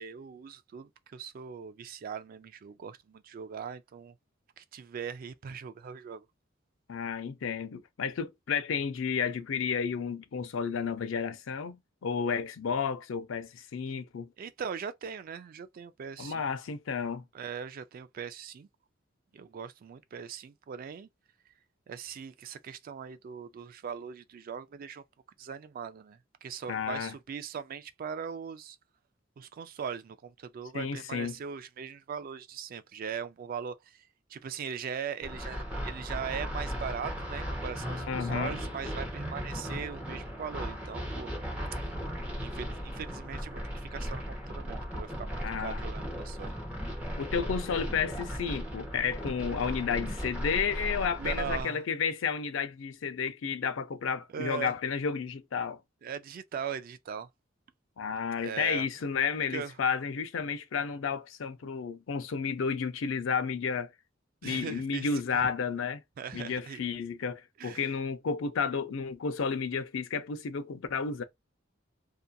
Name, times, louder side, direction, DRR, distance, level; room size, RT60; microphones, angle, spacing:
voice 1, 0.0-4.1 4.6-6.3 14.4-16.5 17.3-18.7 19.3-21.1 21.9-25.0 25.4-28.8 29.4-41.3 42.4-46.6 51.2-51.9 54.3-54.7 56.0-57.3 58.4-58.9 59.5-59.7 64.4-65.5 66.2-66.8 67.6-67.9, right 7 dB, 45° right, 0.3 m, -40 dB
voice 2, 6.9-14.3 16.2-17.2 26.7-27.1 30.7-31.3 38.1-38.6 45.4-45.8 47.2-55.8 58.0-63.9 64.4-66.0 66.3-71.2, left 6 dB, 80° left, 0.4 m, -32 dB
sound 1, 35.2-51.6, equal, 10° right, 0.8 m, -37 dB
2.6 x 2.4 x 2.2 m
head